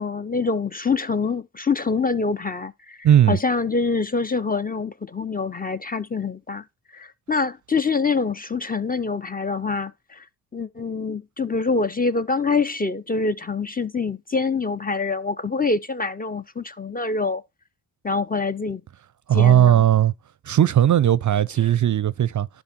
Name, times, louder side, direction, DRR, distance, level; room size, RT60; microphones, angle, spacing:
voice 1, 0.0-6.6 6.9-10.2 10.5-17.4 18.0-18.8 19.3-19.8, left 4 dB, 20° left, 0.6 m, -25 dB
voice 2, 3.0-3.4 19.3-20.1 20.4-22.5, right 11 dB, 45° right, 0.5 m, -17 dB
10.5 x 5.2 x 4.3 m
supercardioid pair, 45°, 44 cm